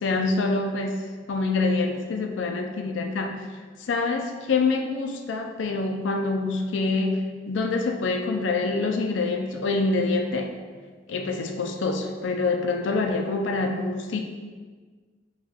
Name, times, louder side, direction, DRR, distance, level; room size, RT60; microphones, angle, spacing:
voice 1, 0.0-3.4 3.9-10.5 11.1-14.2, left 3 dB, 70° left, 4 dB, 0.4 m, -26 dB
5.6 x 2.3 x 2.3 m, 1.5 s
head